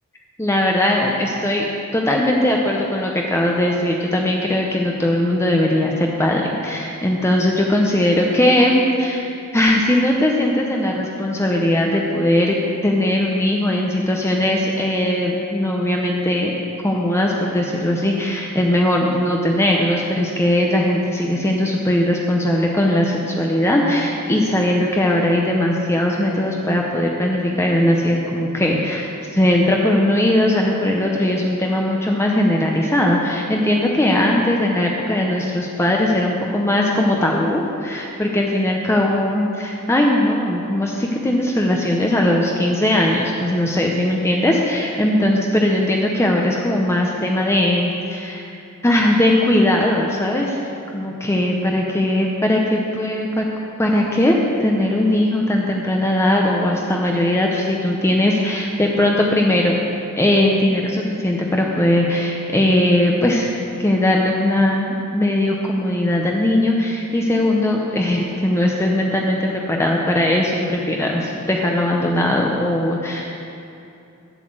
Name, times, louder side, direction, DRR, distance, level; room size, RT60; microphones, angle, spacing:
voice 1, 0.4-16.5 16.8-48.5 48.8-50.6 50.9-53.5 53.8-59.8 60.2-63.5 63.8-73.2, left 1 dB, 10° left, -1 dB, 0.7 m, -19 dB
8.2 x 8.0 x 7.6 m, 2.7 s
head